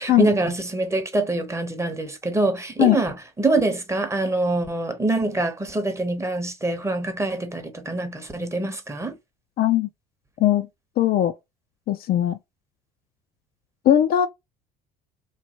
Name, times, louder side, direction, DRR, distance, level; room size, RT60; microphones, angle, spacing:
voice 1, 0.0-9.2, right 2 dB, 15° right, 0.8 m, -25 dB
voice 2, 9.6-9.9 10.4-10.7 11.0-11.3 11.9-12.4 13.9-14.3, left 12 dB, 45° left, 0.4 m, -19 dB
3.1 x 2.2 x 2.8 m
hypercardioid pair, 70°, 21 cm